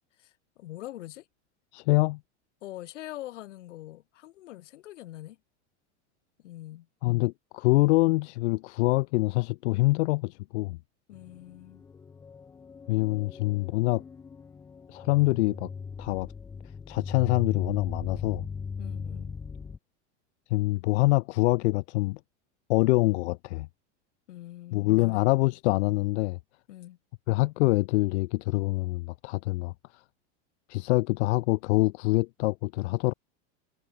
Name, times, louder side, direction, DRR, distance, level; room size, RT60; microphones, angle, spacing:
voice 1, 0.2-1.3 2.6-5.4 6.4-6.9 11.1-11.8 18.8-19.4 24.3-25.2 26.7-27.0, left 15 dB, 90° left, 5.6 m, -44 dB
voice 2, 1.7-2.2 7.0-10.8 12.9-14.0 14.9-15.7 16.0-16.3 16.9-18.4 20.5-22.2 22.7-23.7 24.7-26.4 27.3-29.7 30.7-33.1, left 21 dB, 70° left, 0.6 m, -25 dB
sound 1, 11.1-19.8, left 5 dB, 10° left, 0.4 m, -38 dB
supercardioid pair, 150°, 35 cm